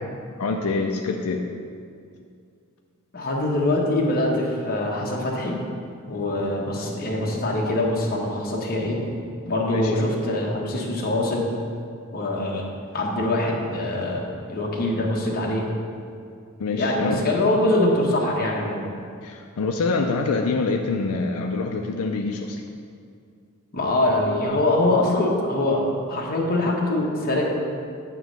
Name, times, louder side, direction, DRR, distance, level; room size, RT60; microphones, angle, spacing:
voice 1, 0.4-1.5 9.6-10.1 16.6-17.3 19.2-22.6, left 3 dB, 80° left, 3 dB, 0.4 m, -25 dB
voice 2, 3.1-5.6 6.1-9.0 9.4-11.5 12.1-12.6 12.9-14.2 14.5-15.7 16.8-18.9 23.7-25.8 26.1-27.4, left 1 dB, 45° left, -2 dB, 1.1 m, -23 dB
9.2 x 3.1 x 6.5 m, 2.3 s
head